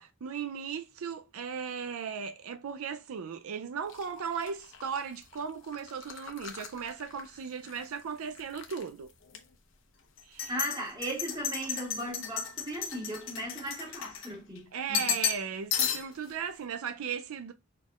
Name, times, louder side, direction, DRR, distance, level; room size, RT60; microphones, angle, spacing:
voice 1, 0.0-9.1 10.2-10.5 14.7-17.5, right 6 dB, 80° right, 0.4 m, -37 dB
sound 1, 3.9-7.9 8.2-8.8 9.3-9.4 10.2-14.6 14.9-15.5 15.7-16.3, left 8 dB, 65° left, 0.9 m, -35 dB
voice 2, 10.5-15.1, right 1 dB, 20° right, 2.0 m, -37 dB
5.3 x 4.3 x 2.3 m
head